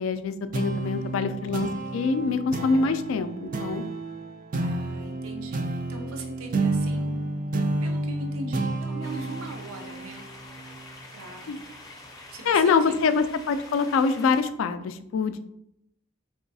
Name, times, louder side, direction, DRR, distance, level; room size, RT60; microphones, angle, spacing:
voice 1, 0.0-3.8 11.5-11.6 12.5-15.4, left 5 dB, 70° left, 11 dB, 0.3 m, -25 dB
sound 1, 0.5-11.4, right 2 dB, 40° right, 0.3 m, -30 dB
voice 2, 0.8-1.3 4.6-7.3 7.8-10.2 11.1-11.6 12.3-13.1, right 1 dB, 85° right, 3 dB, 0.5 m, -41 dB
sound 2, 9.0-14.4, left 2 dB, 15° left, 0.5 m, -46 dB
3.8 x 3.4 x 2.6 m, 0.79 s
head